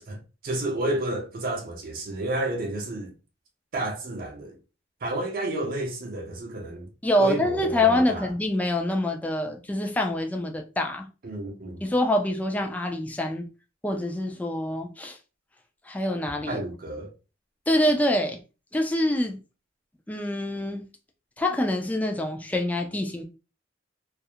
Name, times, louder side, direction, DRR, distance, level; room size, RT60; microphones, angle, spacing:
voice 1, 0.0-3.2 3.7-4.6 5.0-6.9 7.2-8.3 11.2-11.8 16.5-17.1, right 1 dB, 50° right, 0.5 m, -31 dB
voice 2, 7.0-11.1 11.8-13.5 13.8-15.2 15.9-16.6 17.7-18.4 18.7-19.4 20.1-20.8 21.4-23.2, left 1 dB, 10° left, 0.3 m, -25 dB
2.3 x 2.0 x 2.7 m
head